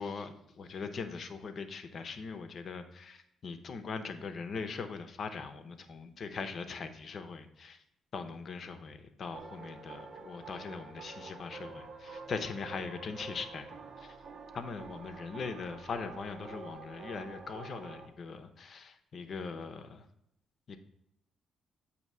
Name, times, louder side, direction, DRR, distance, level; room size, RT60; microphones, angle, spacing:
voice 1, 0.0-7.8 8.1-14.1 14.5-20.0 20.7-20.8, left 5 dB, 55° left, 8 dB, 0.7 m, -41 dB
sound 1, 9.3-18.1, right 4 dB, 65° right, 0.9 m, -47 dB
8.0 x 2.8 x 5.4 m, 0.79 s
cardioid pair, 85°, 0 cm